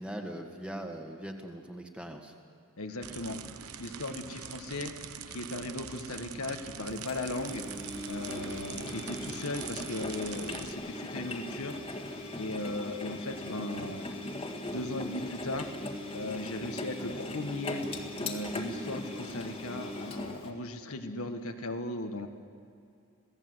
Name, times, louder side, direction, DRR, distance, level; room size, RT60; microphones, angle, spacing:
voice 1, 0.0-2.3, right 1 dB, 5° right, 3 dB, 1.7 m, -40 dB
voice 2, 2.8-3.4 3.8-4.9 5.3-7.6 8.1-11.8 12.3-14.1 14.7-15.7 16.1-17.8 18.2-22.3, left 2 dB, 80° left, 5 dB, 1.6 m, -37 dB
sound 1, 3.0-10.7, right 7 dB, 90° right, 1.1 m, -43 dB
Engine, 7.1-20.5, left 1 dB, 25° left, 1.8 m, -39 dB
27.5 x 18.0 x 8.0 m, 2.5 s
head